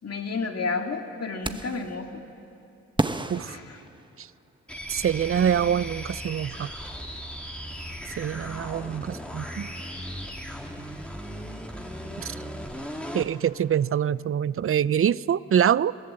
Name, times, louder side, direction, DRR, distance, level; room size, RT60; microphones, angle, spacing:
voice 1, 0.0-2.2 3.4-3.8, left 4 dB, 55° left, 4 dB, 2.1 m, -31 dB
sound 1, 1.4-1.9 3.0-4.5, right 2 dB, 15° right, 1.0 m, -31 dB
sound 2, 4.7-13.3, equal, 5° left, 2.4 m, -37 dB
voice 2, 4.9-6.7 8.2-9.7 12.2-12.3 13.1-15.9, right 9 dB, 50° right, 20 dB, 0.5 m, -25 dB
22.5 x 17.0 x 7.7 m, 2.6 s
cardioid pair, 60°, 29 cm